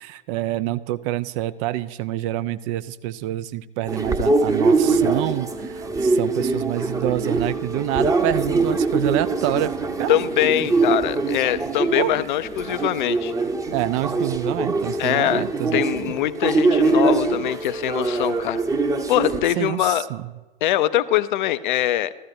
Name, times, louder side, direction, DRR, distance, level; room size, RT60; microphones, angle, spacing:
voice 1, 0.0-9.7 10.0-10.2 10.6-10.7 11.9-12.2 13.7-15.8 19.6-20.2, right 15 dB, 35° right, 15 dB, 0.4 m, -27 dB
sound 1, 3.9-19.4, right 3 dB, 10° right, 0.9 m, -23 dB
voice 2, 10.1-13.3 15.0-15.4 15.7-18.6 19.1-20.1 20.6-22.1, left 13 dB, 55° left, 15 dB, 0.6 m, -22 dB
15.0 x 13.5 x 2.7 m, 1.1 s
figure-of-eight pair, 90°, 30 cm